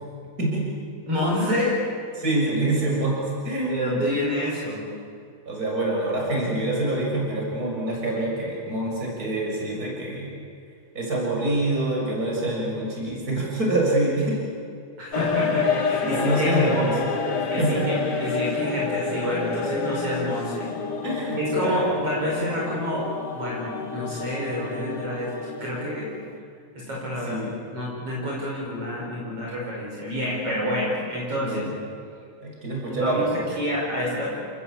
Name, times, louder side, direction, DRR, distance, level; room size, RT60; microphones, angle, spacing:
voice 1, 0.4-0.7 2.2-3.2 3.4-4.0 5.5-10.3 11.0-14.4 16.0-17.2 17.6-17.9 21.0-22.0 22.4-22.5 27.3-27.6 31.4-31.7 32.4-33.7, right 1 dB, 30° right, -2 dB, 7.1 m, -26 dB
voice 2, 1.1-1.8 3.7-4.8 15.0-16.7 17.5-20.7 21.4-23.1 23.3-25.3 25.6-26.1 26.8-27.4 27.7-31.6 32.8-34.3, left 1 dB, 50° right, -4 dB, 6.4 m, -28 dB
sound 1, 15.1-26.4, left 4 dB, 40° left, 2.0 m, -29 dB
29.0 x 20.0 x 8.7 m, 2.3 s
omnidirectional pair, 3.4 m